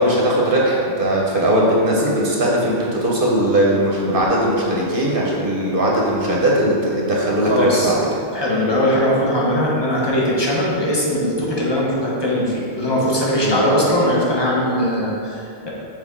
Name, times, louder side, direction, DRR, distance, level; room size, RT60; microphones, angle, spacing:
voice 1, 0.0-8.0 13.4-13.6, right 1 dB, 50° right, -3 dB, 1.0 m, -19 dB
voice 2, 7.4-7.9 8.3-15.7, equal, 25° left, -5 dB, 1.1 m, -20 dB
6.4 x 4.3 x 3.7 m, 2.5 s
omnidirectional pair, 1.2 m